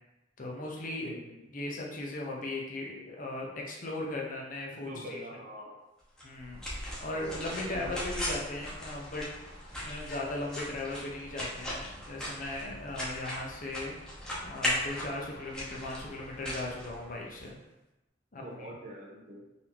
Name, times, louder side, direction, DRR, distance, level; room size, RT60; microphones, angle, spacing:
voice 1, 0.4-1.2 1.5-5.2 6.2-9.3 9.8-13.9 14.4-17.6 18.3-18.7, left 2 dB, 45° left, -1 dB, 0.7 m, -38 dB
voice 2, 4.7-5.8 7.6-8.0 18.4-19.4, equal, 45° right, -2 dB, 0.8 m, -44 dB
sound 1, 6.2-17.5, left 1 dB, 5° left, 0.8 m, -38 dB
4.1 x 2.8 x 2.8 m, 0.97 s
head